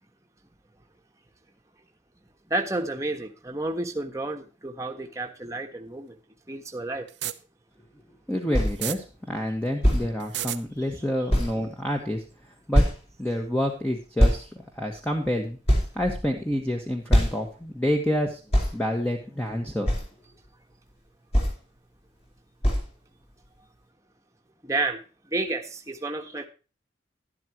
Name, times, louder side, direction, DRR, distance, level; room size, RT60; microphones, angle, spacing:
voice 1, 2.5-6.2 6.5-7.1 24.6-25.0 25.3-26.5, right 2 dB, 15° right, 3 dB, 1.4 m, -30 dB
sound 1, 7.1-7.3 8.7-9.0 10.2-10.6, right 13 dB, 70° right, 0.8 m, -30 dB
voice 2, 8.3-12.2 12.7-12.8 13.2-15.6 15.9-18.4 18.7-19.9, equal, 5° left, 2 dB, 1.5 m, -28 dB
sound 2, 8.5-8.8 9.8-10.1 10.8-10.9 11.3-11.6 12.7-13.1 14.2-14.4 15.1-15.2 15.7-16.5 17.1-17.5 18.5-18.7 19.8-20.1 21.3-21.6 22.6-22.9, equal, 30° left, 4.7 m, -21 dB
12.0 x 12.0 x 3.0 m, 0.33 s
head